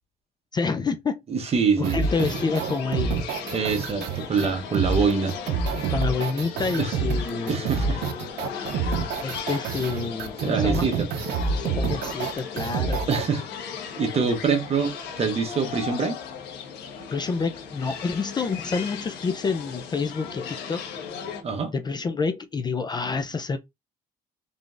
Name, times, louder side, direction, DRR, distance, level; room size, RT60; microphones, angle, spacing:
voice 1, 0.5-1.2 1.8-3.2 5.9-7.7 9.2-10.9 11.5-13.0 17.1-20.8 21.7-23.6, left 4 dB, 25° left, 0.4 m, -28 dB
voice 2, 1.3-2.0 3.5-5.4 6.8-7.2 7.5-8.0 10.4-11.1 13.1-16.2 21.4-21.7, right 5 dB, 35° right, 1.0 m, -25 dB
sound 1, 1.8-13.3, right 5 dB, 75° right, 0.6 m, -28 dB
sound 2, 2.0-21.4, left 7 dB, 80° left, 1.2 m, -37 dB
3.8 x 3.4 x 2.5 m
cardioid pair, 110°, 17 cm